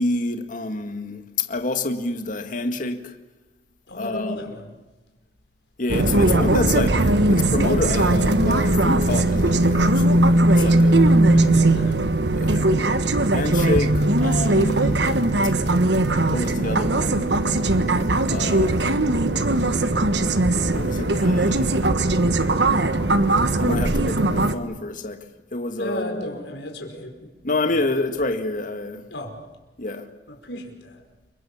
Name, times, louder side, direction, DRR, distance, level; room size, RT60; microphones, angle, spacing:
voice 1, 0.0-3.2 3.9-4.6 5.8-11.3 12.4-12.7 13.3-15.1 16.3-17.3 18.3-18.8 20.7-21.9 23.6-25.2 25.5-26.4 27.4-29.0 29.8-30.1, left 2 dB, 50° left, 7 dB, 1.9 m, -28 dB
voice 2, 3.9-4.7 10.5-12.1 25.8-27.2 27.6-27.7 29.1-29.4 30.3-31.0, left 1 dB, 75° left, 3 dB, 5.5 m, -35 dB
sound 1, 5.9-24.5, right 2 dB, 70° right, 1.4 m, -19 dB
29.5 x 24.0 x 7.3 m, 1.2 s
head